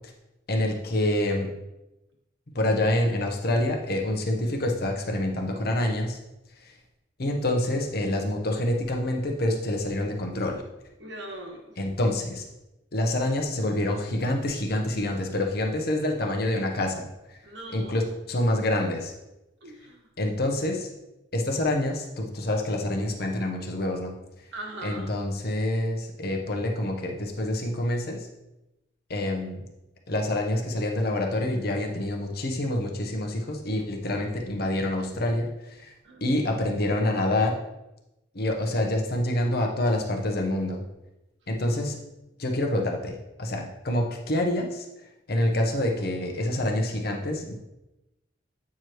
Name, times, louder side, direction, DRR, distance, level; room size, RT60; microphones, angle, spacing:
voice 1, 0.5-1.5 2.5-6.2 7.2-10.6 11.8-12.5 12.9-17.0 17.7-19.1 20.2-20.9 21.3-24.1 24.8-28.3 29.1-29.6 30.1-35.5 36.2-37.6 38.3-40.8 41.5-42.0 42.4-44.8 45.3-47.5, left 1 dB, 60° left, 2 dB, 1.0 m, -27 dB
voice 2, 11.0-11.8 17.4-18.0 19.6-20.1 24.5-25.2 36.0-36.3 41.4-41.8, right 2 dB, 80° right, 1 dB, 1.3 m, -41 dB
8.4 x 4.7 x 3.1 m, 0.95 s
head